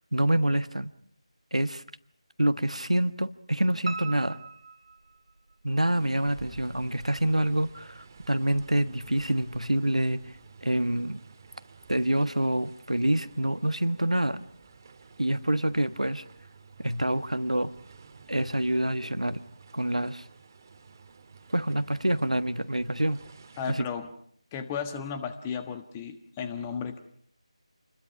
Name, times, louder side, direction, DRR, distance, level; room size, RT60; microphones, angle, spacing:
voice 1, 0.1-0.9 1.5-1.8 2.4-4.4 5.6-10.2 10.6-11.2 11.9-14.4 15.2-16.2 16.8-17.7 18.3-19.4 19.7-20.2 21.5-23.2 23.7-23.8, right 1 dB, 90° right, 11 dB, 1.4 m, -26 dB
Piano, 3.9-5.8 6.2-7.1 7.4-7.5 7.9-8.0 8.3-8.4, right 3 dB, 60° right, 2.1 m, -40 dB
sound 1, 6.0-23.8, right 5 dB, 30° right, 2.0 m, -51 dB
voice 2, 23.6-24.1 24.5-27.0, left 7 dB, 15° left, 8 dB, 1.4 m, -34 dB
28.0 x 21.0 x 6.0 m, 0.64 s
figure-of-eight pair, 160°, 3 cm